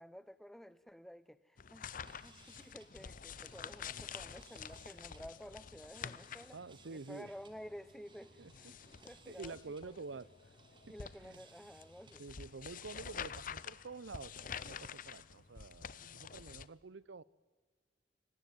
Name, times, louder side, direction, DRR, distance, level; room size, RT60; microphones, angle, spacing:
voice 1, 0.0-6.6 6.9-8.7 9.0-10.0 10.9-12.2, equal, ahead, 16 dB, 0.7 m, -52 dB
sound 1, 1.6-16.7, left 7 dB, 50° left, 0.7 m, -49 dB
sound 2, 2.0-12.4, right 4 dB, 25° right, 1.8 m, -64 dB
voice 2, 6.5-7.3 8.4-8.8 9.3-10.3 11.2-11.4 12.2-17.2, right 4 dB, 85° right, 21 dB, 0.7 m, -48 dB
24.0 x 19.5 x 9.4 m, 1.4 s
head